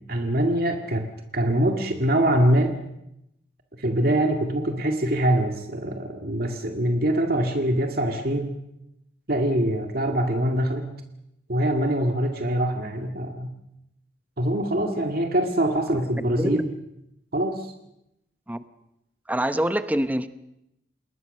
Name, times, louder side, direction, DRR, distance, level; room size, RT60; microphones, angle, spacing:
voice 1, 0.1-2.7 3.8-8.6 9.3-10.9 11.5-13.5 14.4-16.7 17.3-17.7, right 1 dB, 55° right, 4 dB, 2.1 m, -24 dB
voice 2, 19.3-20.3, right 1 dB, 10° right, 11 dB, 0.9 m, -25 dB
29.0 x 20.5 x 6.6 m, 0.84 s
head